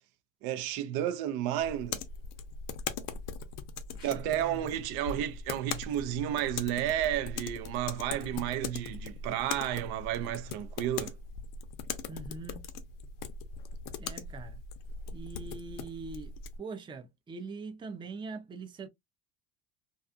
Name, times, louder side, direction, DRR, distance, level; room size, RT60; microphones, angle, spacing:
voice 1, 0.4-2.0 4.0-11.1, right 11 dB, 65° right, 0.5 m, -32 dB
sound 1, 1.6-16.6, left 5 dB, 55° left, 0.6 m, -40 dB
voice 2, 3.9-4.7 12.1-12.7 14.0-14.6 15.1-18.9, right 4 dB, 10° right, 0.4 m, -43 dB
2.4 x 2.4 x 2.4 m
supercardioid pair, 90°, 40 cm